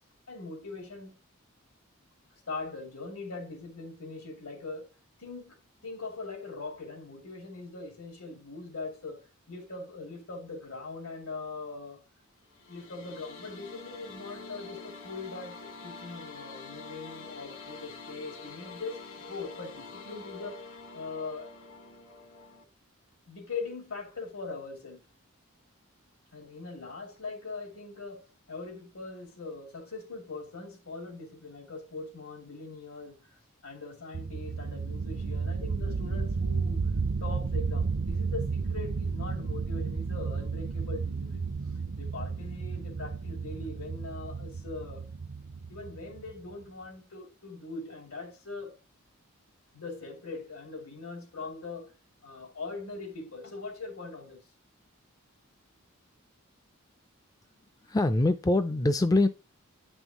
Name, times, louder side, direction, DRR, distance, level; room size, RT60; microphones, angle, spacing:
voice 1, 0.3-1.2 2.5-4.9 5.2-5.6 5.8-12.0 12.7-20.7 20.9-21.5 23.3-25.0 26.3-33.4 33.6-36.9 37.2-41.5 41.9-45.1 45.7-48.8 49.7-51.9 52.2-54.4, left 3 dB, 80° left, 2.9 m, -41 dB
sound 1, 12.4-22.6, left 4 dB, 60° left, 1.7 m, -46 dB
sound 2, 34.1-46.5, right 4 dB, 55° right, 0.5 m, -32 dB
voice 2, 57.9-59.3, left 2 dB, 15° left, 0.3 m, -24 dB
9.8 x 5.4 x 2.9 m
head